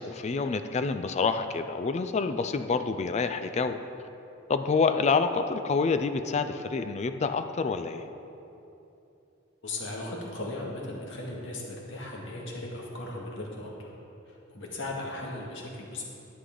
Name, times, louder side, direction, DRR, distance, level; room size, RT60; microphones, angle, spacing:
voice 1, 0.0-3.8 4.5-8.1, left 4 dB, 35° left, 9 dB, 0.4 m, -27 dB
voice 2, 9.6-13.9 14.3-16.0, left 2 dB, 65° left, -2 dB, 2.1 m, -37 dB
11.5 x 9.7 x 3.9 m, 2.8 s
head